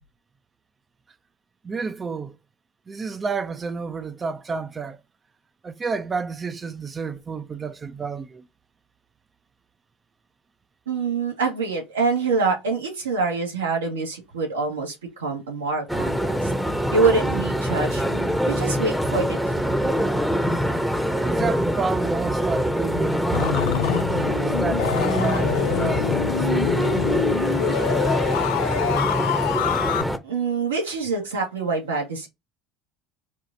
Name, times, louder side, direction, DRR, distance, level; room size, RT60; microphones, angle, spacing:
voice 1, 1.6-2.4 2.9-5.0 5.6-8.5 21.2-23.7 24.1-26.1 26.4-27.3, right 5 dB, 30° right, 0.5 m, -30 dB
voice 2, 10.9-16.5 16.9-19.7 30.2-32.3, right 4 dB, 90° right, 1.5 m, -25 dB
sound 1, 15.9-30.2, equal, ahead, 0.9 m, -24 dB
sound 2, 23.3-30.0, left 13 dB, 75° left, 0.3 m, -26 dB
4.5 x 2.4 x 3.8 m
hypercardioid pair, 70°, 0 cm